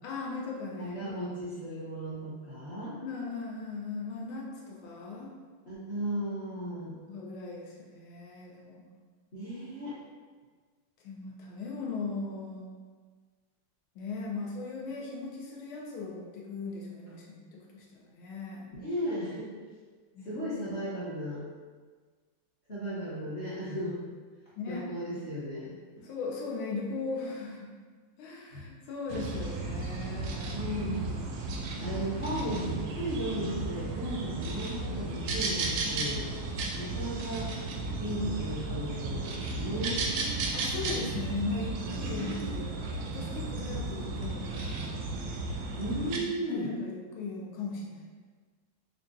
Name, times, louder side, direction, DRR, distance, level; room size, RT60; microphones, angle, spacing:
voice 1, 0.0-1.2 3.0-5.3 7.1-8.8 11.0-12.7 13.9-18.7 20.1-20.3 24.6-24.9 26.0-27.7 28.2-30.6 40.5-42.7 43.0-45.4 46.2-48.1, left 3 dB, 85° left, -3 dB, 1.5 m, -38 dB
voice 2, 0.7-3.0 5.7-7.0 9.3-10.0 18.8-19.5 20.2-21.4 22.7-24.0 24.6-25.7 28.5-28.7 30.5-31.1 31.8-36.3 36.8-37.5 38.0-40.0 42.1-42.3 45.8-46.7, equal, 45° left, -11 dB, 0.8 m, -35 dB
sound 1, 29.1-46.2, right 2 dB, 75° right, 1.1 m, -34 dB
5.2 x 2.3 x 2.5 m, 1.5 s
omnidirectional pair, 2.2 m